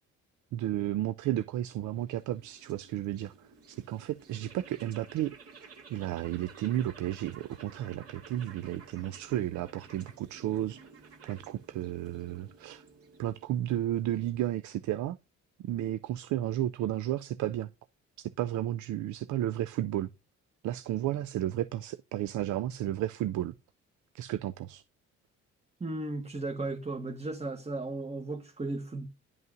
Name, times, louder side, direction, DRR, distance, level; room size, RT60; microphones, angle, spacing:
voice 1, 0.5-10.9 11.2-12.8 13.2-15.2 15.6-17.7 18.4-20.1 20.6-23.5 24.1-24.8, right 13 dB, 75° right, 0.4 m, -33 dB
sound 1, 1.4-14.7, right 4 dB, 50° right, 2.2 m, -54 dB
voice 2, 25.8-29.1, right 2 dB, 20° right, 1.2 m, -35 dB
11.0 x 5.5 x 2.6 m
cardioid pair, 90°, 30 cm